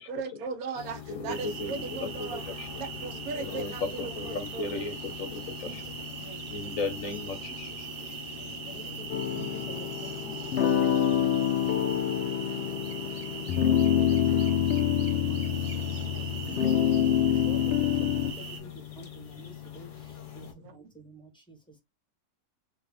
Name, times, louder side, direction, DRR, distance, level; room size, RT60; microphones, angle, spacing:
voice 1, 0.0-4.8 5.7-6.5 8.4-9.0 9.4-9.5 16.1-16.2 20.4-20.8, right 5 dB, 75° right, 1.1 m, -39 dB
sound 1, 0.7-20.5, left 9 dB, 40° left, 0.8 m, -43 dB
voice 2, 1.1-2.1 2.5-2.7 3.4-3.9 4.2-5.8 6.5-7.9, left 3 dB, 65° left, 1.0 m, -35 dB
sound 2, 1.3-18.6, right 6 dB, 50° right, 0.8 m, -41 dB
voice 3, 3.1-4.2 6.6-7.2 8.7-11.4 12.2-12.8 13.3-16.0 16.4-21.8, equal, 5° left, 0.7 m, -50 dB
sound 3, 9.1-18.3, left 9 dB, 90° left, 0.5 m, -26 dB
3.3 x 2.4 x 3.3 m
omnidirectional pair, 1.6 m